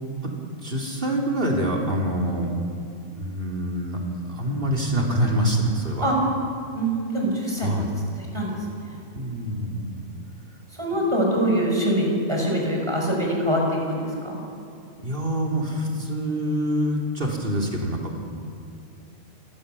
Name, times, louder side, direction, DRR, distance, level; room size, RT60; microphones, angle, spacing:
voice 1, 0.6-2.5 3.2-4.0 4.3-6.1 7.6-7.9 9.1-10.1 15.0-18.1, equal, 45° right, 1 dB, 3.7 m, -25 dB
voice 2, 6.7-7.8 8.3-8.6 8.9-9.0 10.8-14.4, right 1 dB, 20° right, -1 dB, 5.8 m, -24 dB
28.0 x 18.0 x 7.0 m, 2.5 s
omnidirectional pair, 1.3 m